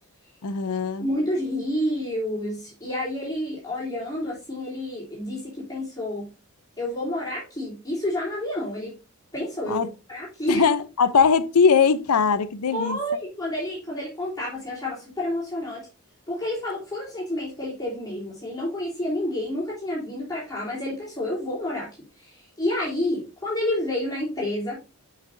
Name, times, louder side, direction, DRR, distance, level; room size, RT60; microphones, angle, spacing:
voice 1, 0.4-1.1 9.7-9.9 10.5-13.0, left 6 dB, 85° left, 0.6 m, -20 dB
voice 2, 1.0-6.3 6.8-8.9 9.3-10.7 12.7-15.9 16.3-21.9 22.2-24.8, left 1 dB, 15° left, 3.5 m, -29 dB
8.2 x 6.0 x 2.6 m
head